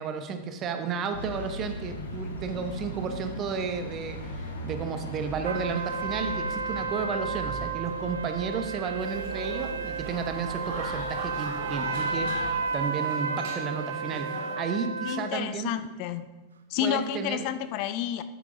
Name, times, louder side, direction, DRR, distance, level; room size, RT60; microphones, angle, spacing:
voice 1, 0.0-15.7 16.8-17.5, right 5 dB, 30° right, 0.8 m, -33 dB
sound 1, 1.1-12.6, equal, 70° left, 1.2 m, -39 dB
sound 2, 5.4-15.3, right 4 dB, 70° right, 0.5 m, -33 dB
sound 3, 9.0-14.6, right 3 dB, 50° right, 1.7 m, -40 dB
voice 2, 15.0-16.3 16.7-18.2, left 11 dB, 45° left, 0.4 m, -30 dB
10.0 x 8.3 x 2.6 m
figure-of-eight pair, 90°, 0 cm